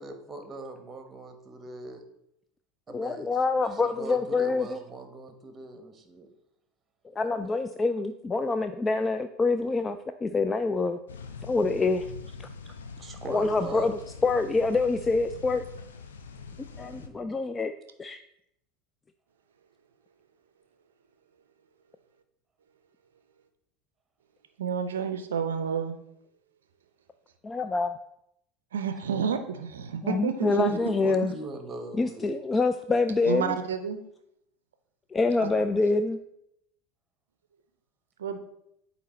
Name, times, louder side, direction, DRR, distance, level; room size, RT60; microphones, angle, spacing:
voice 1, 0.0-2.0 2.9-3.3 3.7-6.3 12.6-14.0 16.7-17.4 30.7-32.3, right 3 dB, 25° right, 6 dB, 1.1 m, -41 dB
voice 2, 2.9-4.8 7.2-11.0 11.5-12.0 13.3-15.6 16.8-17.7 18.0-18.2 27.4-27.9 30.0-31.3 32.0-33.5 35.1-36.2, left 3 dB, 20° left, 9 dB, 0.3 m, -26 dB
sound 1, 11.1-17.1, left 5 dB, 80° left, 0.5 m, -43 dB
voice 3, 24.6-26.0 28.7-30.7 33.2-34.0 35.4-35.5 38.2-38.4, right 7 dB, 75° right, 9 dB, 0.5 m, -30 dB
8.3 x 2.9 x 4.2 m, 0.78 s
figure-of-eight pair, 80°, 0 cm